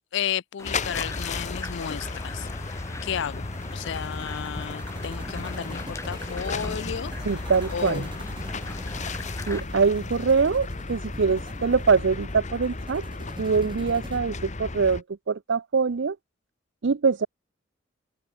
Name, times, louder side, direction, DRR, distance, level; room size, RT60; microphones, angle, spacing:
voice 1, 0.0-3.4 3.7-7.1 7.7-8.1, left 8 dB, 60° left, 0.4 m, -33 dB
sound 1, 0.6-15.0, left 3 dB, 35° left, 1.1 m, -34 dB
sound 2, 0.6-9.6, left 2 dB, 15° left, 1.1 m, -41 dB
sound 3, 3.5-14.2, right 2 dB, 25° right, 2.2 m, -46 dB
voice 2, 7.2-8.1 9.5-13.0 13.4-16.2 16.8-17.3, right 5 dB, 65° right, 0.5 m, -23 dB
head